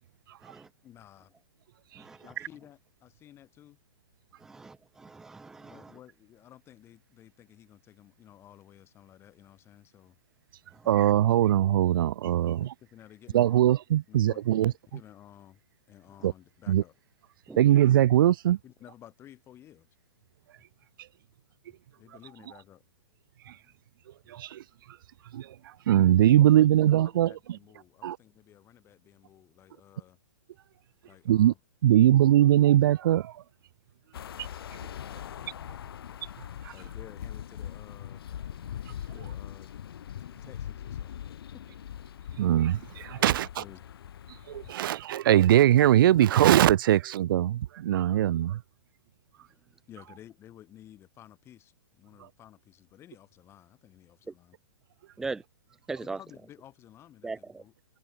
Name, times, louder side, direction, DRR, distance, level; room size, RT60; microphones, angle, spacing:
voice 1, 0.8-1.3 2.2-3.8 5.6-10.2 12.4-13.6 14.1-15.6 15.9-16.9 18.6-19.9 22.0-22.8 26.7-27.0 27.2-30.2 31.0-31.6 31.9-32.1 36.7-38.2 39.1-39.7 40.2-41.2 41.5-41.6 43.2-43.9 49.9-54.6 56.0-57.7, left 12 dB, 20° left, 6.9 m, -53 dB
voice 2, 4.5-6.0 17.5-17.6 55.2-55.4 55.9-56.2 57.2-57.6, right 3 dB, 5° right, 0.4 m, -39 dB
voice 3, 10.9-12.7 13.3-14.7 16.2-16.3 16.7-16.8 17.6-18.6 24.3-24.6 25.3-25.5 25.9-27.6 28.0-28.2 31.3-31.5 31.8-33.3 36.6-36.7 42.4-43.6 44.5-48.6, right 12 dB, 60° right, 0.6 m, -21 dB
sound 1, 34.1-44.7, left 10 dB, 70° left, 2.2 m, -41 dB
hypercardioid pair, 160°, 13 cm